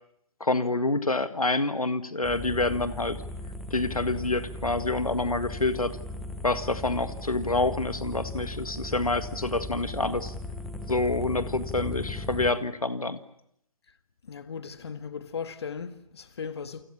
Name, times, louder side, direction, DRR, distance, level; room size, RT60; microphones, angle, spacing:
voice 1, 0.4-3.2 3.7-6.0 6.4-10.3 10.9-13.2, left 2 dB, 80° left, 1.8 m, -27 dB
sound 1, 2.2-12.5, left 2 dB, ahead, 1.4 m, -37 dB
voice 2, 14.2-16.8, left 6 dB, 45° left, 1.9 m, -37 dB
29.0 x 25.5 x 7.3 m
figure-of-eight pair, 145°, 18 cm